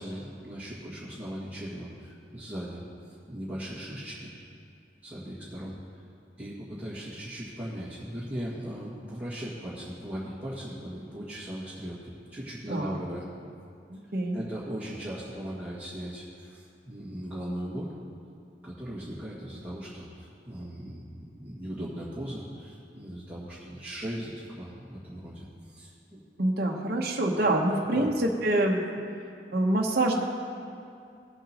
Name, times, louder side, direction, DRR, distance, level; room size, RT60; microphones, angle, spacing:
voice 1, 0.0-2.8 3.3-4.3 5.0-5.7 6.4-13.3 14.3-17.9 18.6-26.2 27.8-28.1, equal, 10° right, -11 dB, 1.9 m, -38 dB
voice 2, 12.7-13.0 13.9-14.4 26.4-29.0 29.5-30.2, right 1 dB, 60° right, 0 dB, 1.0 m, -26 dB
19.5 x 8.0 x 2.9 m, 2.4 s
head